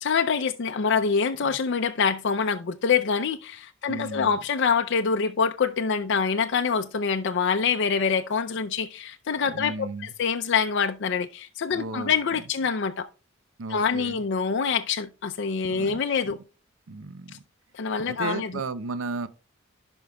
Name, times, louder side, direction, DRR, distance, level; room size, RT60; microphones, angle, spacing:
voice 1, 0.0-9.9 10.2-13.1 13.7-16.4 17.7-18.5, left 6 dB, 60° left, 0.5 m, -25 dB
voice 2, 3.9-4.4 9.5-10.1 11.7-12.1 13.6-14.2 15.7-16.0 16.9-17.4 18.0-19.3, right 3 dB, 85° right, 0.6 m, -34 dB
16.0 x 5.3 x 2.3 m
head